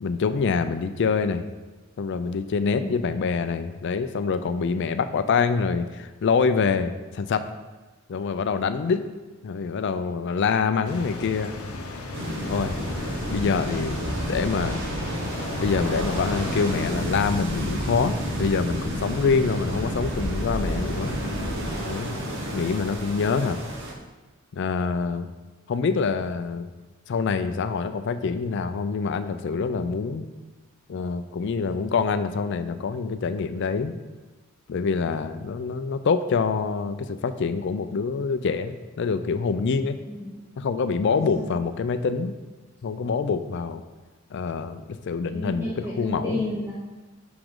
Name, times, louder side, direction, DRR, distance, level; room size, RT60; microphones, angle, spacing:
voice 1, 0.0-1.4 2.0-7.4 8.1-9.0 9.4-11.5 12.5-12.8 13.3-14.8 15.6-21.2 21.8-22.1 22.5-23.6 24.5-25.3 25.7-26.7 27.1-30.3 30.9-33.9 34.7-40.0 40.6-42.3 42.8-43.8 44.3-46.4, left 5 dB, 50° left, 10 dB, 0.3 m, -25 dB
voice 2, 2.6-3.0 40.1-40.4 41.1-41.5 45.2-46.7, left 2 dB, 10° right, -7 dB, 0.8 m, -32 dB
sound 1, 10.8-16.9, left 2 dB, 75° left, 0.7 m, -36 dB
sound 2, 12.1-23.9, equal, 55° right, 0.9 m, -30 dB
6.0 x 5.0 x 3.7 m, 1.2 s
head